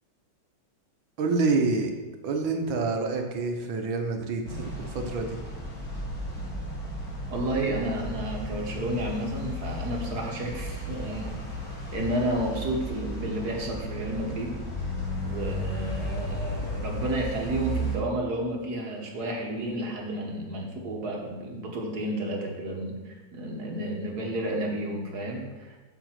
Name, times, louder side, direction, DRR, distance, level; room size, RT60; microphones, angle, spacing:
voice 1, 1.2-1.9 2.2-5.4, right 3 dB, 80° right, 4 dB, 1.9 m, -27 dB
sound 1, 4.4-18.0, equal, 50° left, 3.1 m, -34 dB
voice 2, 7.3-11.3 11.9-14.6 15.2-25.8, right 1 dB, 55° right, 0 dB, 1.9 m, -31 dB
7.3 x 7.1 x 5.9 m, 1.2 s
omnidirectional pair, 2.1 m